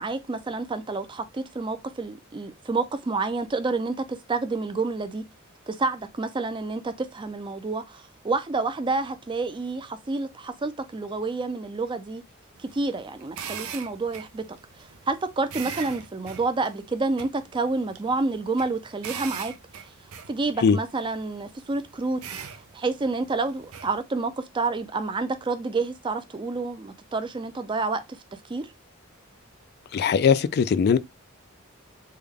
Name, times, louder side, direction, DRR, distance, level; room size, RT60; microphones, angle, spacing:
voice 1, 0.0-5.2 5.7-12.2 12.7-14.4 15.1-19.5 20.3-22.2 22.7-28.0 28.3-28.7, right 3 dB, 25° right, 0.4 m, -29 dB
sound 1, 12.6-24.0, right 7 dB, 85° right, 0.5 m, -42 dB
voice 2, 29.9-31.0, left 6 dB, 50° left, 0.3 m, -20 dB
3.4 x 2.2 x 3.5 m
head